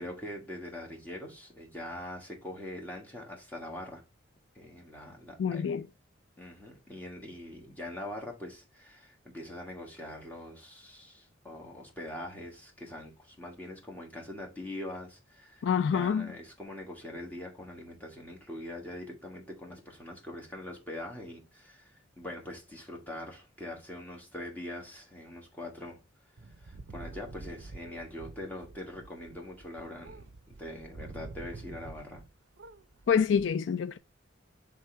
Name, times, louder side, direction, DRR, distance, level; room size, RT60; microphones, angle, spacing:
voice 1, 0.0-4.0 4.5-5.8 6.4-15.7 15.9-26.0 26.6-30.3 30.6-32.2, left 1 dB, 10° left, 1.5 m, -43 dB
voice 2, 5.4-5.8 15.6-16.3 33.1-34.0, left 7 dB, 65° left, 0.3 m, -26 dB
sound 1, 26.4-32.3 32.6-33.5, right 3 dB, 60° right, 0.5 m, -47 dB
6.0 x 3.7 x 4.4 m
head